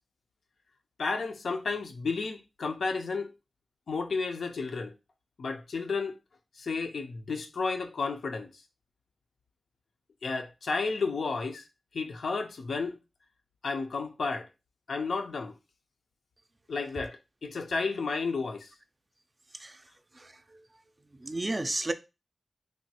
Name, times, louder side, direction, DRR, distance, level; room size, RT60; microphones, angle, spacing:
voice 1, 1.0-3.3 3.9-4.9 5.4-6.2 6.6-8.5 10.2-11.6 11.9-13.0 13.6-14.5 14.9-15.5 16.7-18.7, left 4 dB, 85° left, 0.4 m, -32 dB
voice 2, 19.5-19.8 20.1-20.6 21.1-21.9, right 2 dB, 35° right, 0.3 m, -33 dB
3.2 x 2.2 x 2.8 m
cardioid pair, 60°, 0 cm